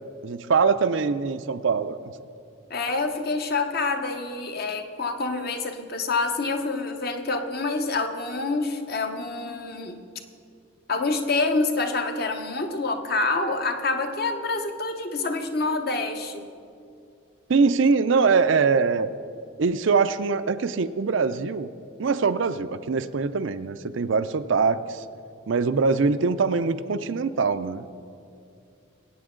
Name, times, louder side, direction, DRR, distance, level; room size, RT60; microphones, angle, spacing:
voice 1, 0.2-2.1 17.5-19.1 19.6-21.7 22.0-25.0 25.5-27.8, right 5 dB, 65° right, 12 dB, 0.5 m, -23 dB
voice 2, 2.7-10.0 10.9-16.5, left 3 dB, 50° left, 6 dB, 0.9 m, -27 dB
23.0 x 8.7 x 3.8 m, 2.5 s
head